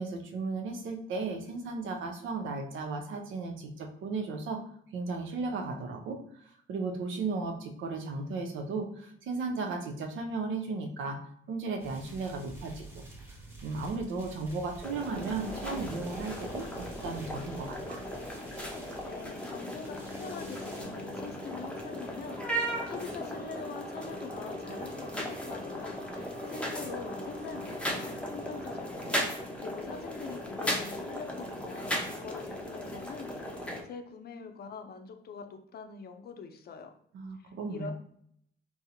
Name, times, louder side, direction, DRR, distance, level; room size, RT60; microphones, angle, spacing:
voice 1, 0.0-4.6 4.9-6.2 6.7-11.2 11.5-12.8 13.6-18.0 37.1-37.9, right 3 dB, 75° right, 3 dB, 0.6 m, -35 dB
sound 1, 11.8-20.8, right 2 dB, 10° right, 1.0 m, -48 dB
sound 2, 14.8-33.8, equal, 5° left, 0.6 m, -37 dB
voice 2, 19.0-36.9 37.4-37.9, left 5 dB, 55° left, 6 dB, 0.5 m, -44 dB
sound 3, 19.2-30.7, left 1 dB, 40° right, 1.0 m, -47 dB
3.6 x 2.0 x 2.8 m, 0.65 s
cardioid pair, 90°, 20 cm